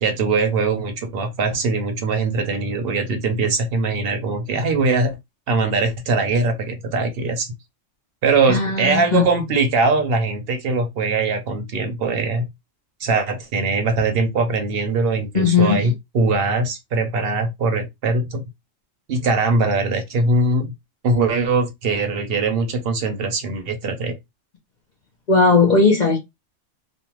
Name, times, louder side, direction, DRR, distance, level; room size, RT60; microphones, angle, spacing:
voice 1, 0.0-5.2 5.5-7.5 8.2-12.5 13.0-18.4 19.1-20.7 21.0-24.1, right 3 dB, 55° right, 0.9 m, -21 dB
voice 2, 8.5-9.2 15.3-15.9 25.3-26.2, left 4 dB, 45° left, 0.7 m, -17 dB
2.6 x 2.1 x 2.9 m
omnidirectional pair, 1.3 m